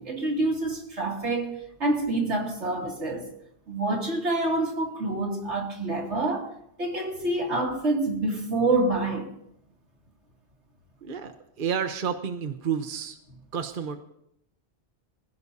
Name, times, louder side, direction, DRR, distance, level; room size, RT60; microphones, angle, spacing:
voice 1, 0.0-3.3 3.7-6.5 6.8-9.3, right 2 dB, 80° right, 2.9 m, -27 dB
voice 2, 11.0-11.3 11.6-13.2 13.5-14.0, right 7 dB, 50° right, 1.1 m, -30 dB
25.5 x 16.0 x 2.8 m
omnidirectional pair, 1.2 m